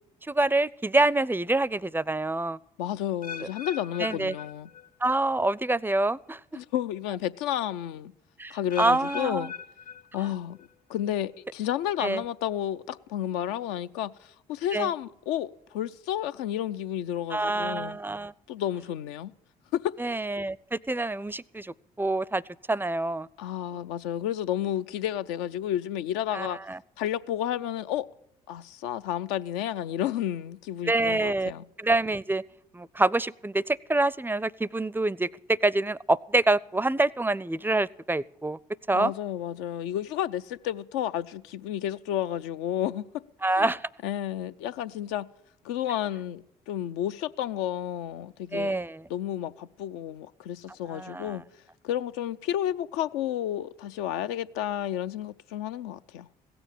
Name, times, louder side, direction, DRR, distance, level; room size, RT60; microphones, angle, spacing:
voice 1, 0.3-2.6 4.0-4.3 5.0-6.4 8.4-9.5 12.0-12.2 14.7-14.9 17.3-18.3 20.0-22.4 22.7-23.3 26.3-26.8 30.9-31.5 31.8-32.4 32.7-38.6 38.9-39.1 43.4-43.9 48.5-49.0 50.9-51.4, right 2 dB, 10° right, 0.4 m, -26 dB
voice 2, 2.8-4.7 6.5-8.1 8.5-9.5 10.1-18.0 18.5-19.3 19.7-19.9 23.4-26.6 27.0-28.1 28.5-31.6 38.9-43.0 43.6-43.7 44.0-45.3 45.6-48.8 49.1-51.4 51.8-56.3, left 11 dB, 80° left, 0.6 m, -31 dB
sound 1, 3.2-5.2 5.5-5.9 6.6-6.7 8.7-10.7 11.0-11.4 12.1-12.2, left 6 dB, 45° left, 0.9 m, -42 dB
16.5 x 7.0 x 9.9 m
hypercardioid pair, 50°, 19 cm